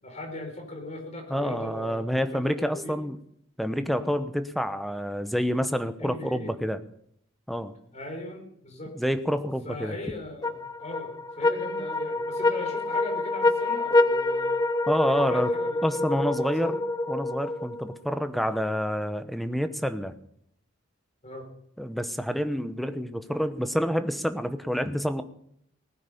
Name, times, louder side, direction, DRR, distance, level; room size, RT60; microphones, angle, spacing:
voice 1, 0.0-3.0 3.9-4.1 6.0-6.5 7.9-8.9 9.6-14.6 15.0-16.8 21.2-21.5, left 1 dB, 35° left, 3 dB, 4.8 m, -39 dB
voice 2, 1.3-3.2 3.6-6.8 7.5-7.7 8.9-9.9 14.9-15.5 15.8-16.8 17.1-20.2 21.8-25.2, equal, ahead, 10 dB, 0.9 m, -28 dB
sound 1, 10.4-18.0, left 2 dB, 20° left, 0.6 m, -26 dB
19.0 x 9.6 x 7.1 m, 0.70 s
head